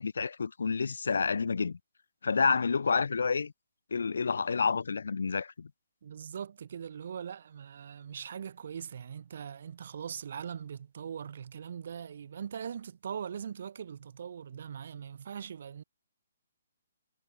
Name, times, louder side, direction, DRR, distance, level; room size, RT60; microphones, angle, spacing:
voice 1, 0.0-1.8 2.2-3.5 3.9-5.7, left 5 dB, 80° left, 1.9 m, -29 dB
voice 2, 6.0-15.8, right 8 dB, 60° right, 3.1 m, -41 dB
hypercardioid pair, 155°, 0 cm